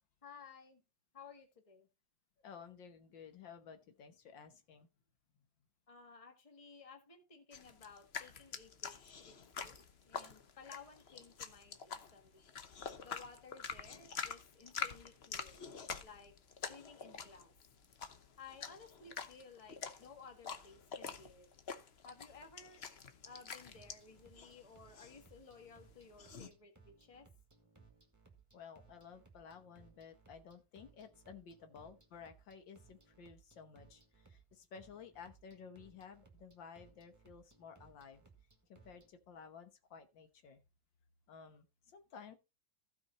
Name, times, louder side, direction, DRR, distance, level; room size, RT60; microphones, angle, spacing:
voice 1, 0.2-0.8 1.1-1.9 5.9-12.5 13.0-15.7 16.0-16.3 16.7-17.5 18.4-21.5 22.0-22.8 23.2-27.3 31.6-31.7, left 5 dB, 20° left, 1.5 m, -57 dB
voice 2, 2.4-4.9 28.5-38.2 38.7-40.6 41.3-42.4, left 6 dB, 70° left, 1.8 m, -54 dB
sound 1, 7.5-26.5, left 6 dB, 45° left, 0.9 m, -47 dB
sound 2, 23.6-39.1, right 4 dB, 10° right, 1.6 m, -65 dB
15.5 x 5.3 x 4.1 m
omnidirectional pair, 2.1 m